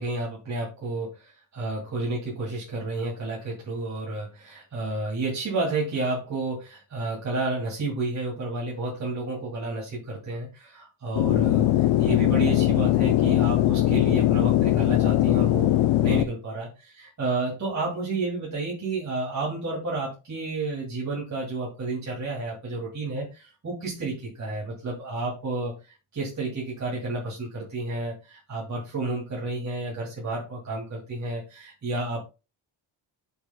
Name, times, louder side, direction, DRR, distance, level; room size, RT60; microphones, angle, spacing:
voice 1, 0.0-15.7 16.0-32.2, right 2 dB, 35° right, -4 dB, 2.3 m, -31 dB
sound 1, 11.2-16.2, left 14 dB, 70° left, 0.6 m, -21 dB
11.5 x 6.6 x 2.2 m, 0.29 s
wide cardioid pair, 150°, 50 cm